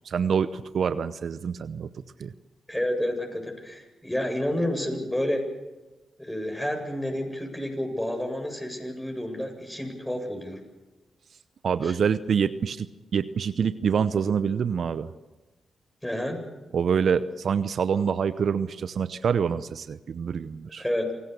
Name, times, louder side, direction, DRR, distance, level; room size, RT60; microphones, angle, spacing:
voice 1, 0.0-1.9 2.2-2.3 11.6-15.1 16.7-20.8, right 7 dB, 65° right, 13 dB, 0.8 m, -26 dB
voice 2, 2.7-5.5 6.2-10.6 11.8-11.9 16.0-16.4 20.8-21.1, left 1 dB, 10° left, 4 dB, 7.9 m, -30 dB
27.0 x 17.5 x 6.9 m, 1.1 s
supercardioid pair, 45°, 0 cm